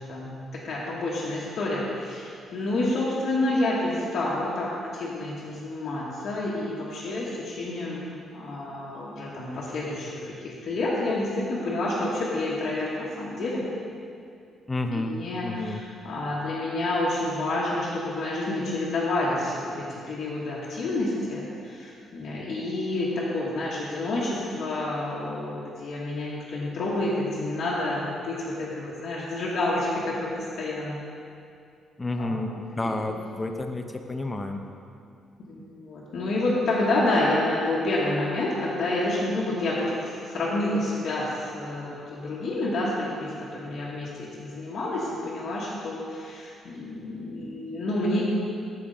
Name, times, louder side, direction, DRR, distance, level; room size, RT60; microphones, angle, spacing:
voice 1, 0.0-13.6 14.9-31.0 32.2-32.5 32.8-33.2 35.4-48.2, left 2 dB, 60° left, -6 dB, 1.2 m, -29 dB
voice 2, 14.7-15.1 15.4-15.8 32.0-34.6, left 2 dB, 15° left, 5 dB, 0.5 m, -30 dB
7.7 x 7.3 x 3.9 m, 2.4 s
cardioid pair, 125°, 0 cm